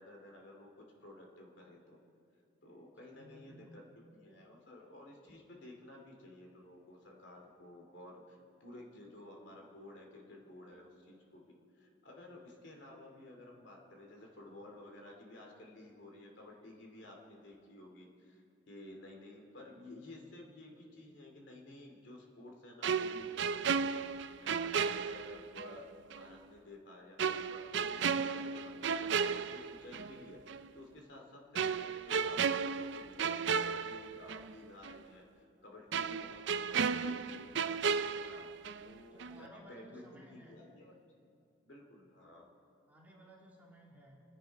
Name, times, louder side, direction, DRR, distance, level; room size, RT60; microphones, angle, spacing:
voice 1, 0.0-2.0 2.6-3.8 4.1-11.4 11.7-23.7 24.4-25.9 26.2-37.5 38.1-40.9 41.6-42.5, left 1 dB, 65° left, 0 dB, 2.7 m, -53 dB
voice 2, 3.0-3.8 39.1-40.6 42.9-44.2, equal, 10° right, -4 dB, 2.8 m, -58 dB
sound 1, 22.8-25.8 26.1-26.2 27.2-30.2 30.5-30.7 31.6-34.6 34.8-35.0 35.9-38.9 39.2-39.4, right 6 dB, 65° right, 0.5 m, -34 dB
29.0 x 10.5 x 4.6 m, 2.5 s
head